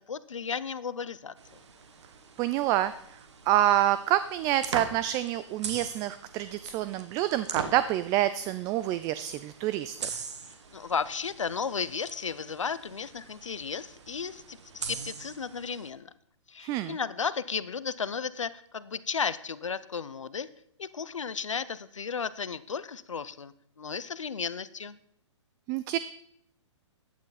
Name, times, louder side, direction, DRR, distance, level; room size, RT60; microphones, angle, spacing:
voice 1, 0.0-1.3 10.7-16.1 16.5-20.5 20.8-25.0, left 6 dB, 80° left, 17 dB, 0.7 m, -34 dB
sound 1, 1.4-15.9, right 5 dB, 65° right, 1.7 m, -42 dB
voice 2, 2.4-2.9 3.5-10.2 16.6-17.0 25.7-26.0, right 13 dB, 20° right, 14 dB, 0.3 m, -27 dB
14.5 x 9.6 x 4.1 m, 0.71 s
hypercardioid pair, 125°, 16 cm